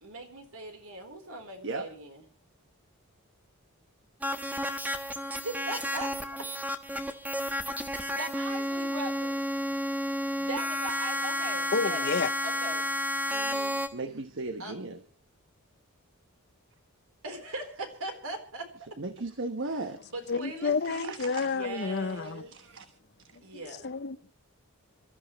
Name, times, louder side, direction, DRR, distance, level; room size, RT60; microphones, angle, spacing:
voice 1, 0.0-2.2 5.4-6.4 8.1-9.4 10.4-12.1 12.4-12.9 13.3-13.8 14.6-14.7 17.2-19.0 19.7-22.6 23.4-23.9, right 2 dB, 70° right, 4.0 m, -40 dB
sound 1, 4.2-13.9, equal, 5° right, 1.4 m, -31 dB
voice 2, 11.7-12.3 20.3-22.4 23.5-24.3, left 4 dB, 50° left, 0.7 m, -30 dB
voice 3, 13.9-15.0 19.0-20.0 21.0-21.5 22.2-22.8, right 3 dB, 55° right, 1.2 m, -36 dB
27.0 x 13.5 x 3.2 m
head